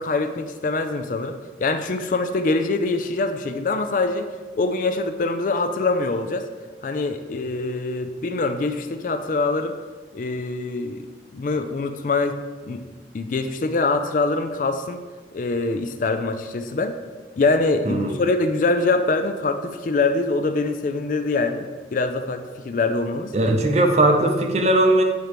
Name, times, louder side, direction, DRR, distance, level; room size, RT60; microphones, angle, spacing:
voice 1, 0.0-4.3 4.6-6.4 6.8-9.7 10.1-12.4 12.7-12.8 13.1-15.0 15.3-17.0 17.4-23.3, left 3 dB, 45° left, 8 dB, 0.4 m, -24 dB
voice 2, 23.3-25.0, right 1 dB, 35° right, 5 dB, 0.6 m, -18 dB
8.0 x 3.0 x 4.9 m, 1.4 s
head